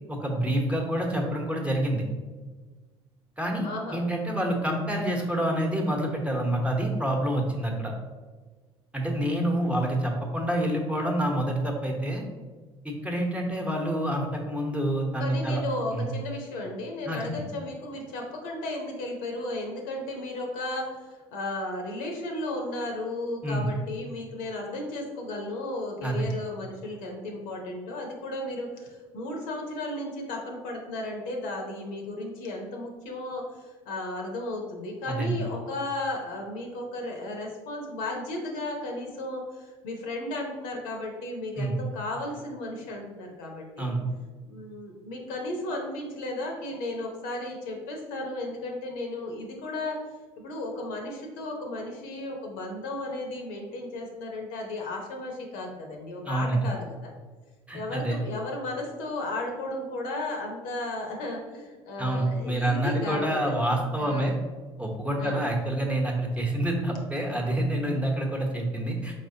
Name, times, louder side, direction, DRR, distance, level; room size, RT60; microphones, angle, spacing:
voice 1, 0.1-2.0 3.4-7.9 8.9-12.2 12.8-15.6 15.9-16.1 17.0-17.4 23.4-23.7 26.0-26.3 35.1-35.4 41.6-41.8 43.8-44.0 56.2-56.7 57.7-58.2 62.0-64.3 64.8-69.1, right 1 dB, 10° right, 0 dB, 1.0 m, -27 dB
voice 2, 3.6-4.0 15.2-43.9 44.4-50.1 50.4-57.1 57.7-63.6 64.0-64.4 65.2-65.5, left 2 dB, 65° left, 1 dB, 0.8 m, -34 dB
4.9 x 3.3 x 2.8 m, 1.4 s
hypercardioid pair, 60°, 16 cm